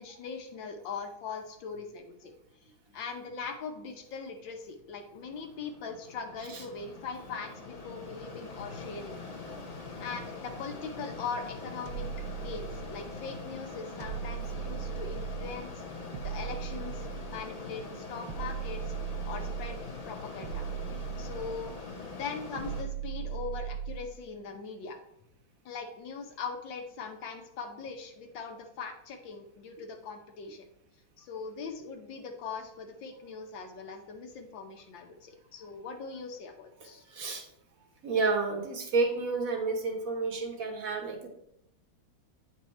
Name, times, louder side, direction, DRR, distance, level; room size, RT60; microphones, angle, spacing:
voice 1, 0.0-2.3 2.9-9.2 10.0-12.1 12.4-15.8 16.2-18.9 19.2-19.8 20.1-20.7 21.2-21.7 22.1-25.0 25.6-30.7 31.2-37.0, left 5 dB, 70° left, 4 dB, 1.6 m, -41 dB
Mechanisms, 4.8-22.8, left 3 dB, 40° left, 0.5 m, -43 dB
sound 1, 11.9-13.2 14.0-15.6 16.1-17.6 18.3-19.9 20.4-21.8 22.6-24.2, right 8 dB, 70° right, 1.2 m, -38 dB
voice 2, 36.8-37.4 38.0-41.3, right 4 dB, 50° right, 3 dB, 1.3 m, -30 dB
9.1 x 4.6 x 4.2 m, 0.79 s
omnidirectional pair, 2.2 m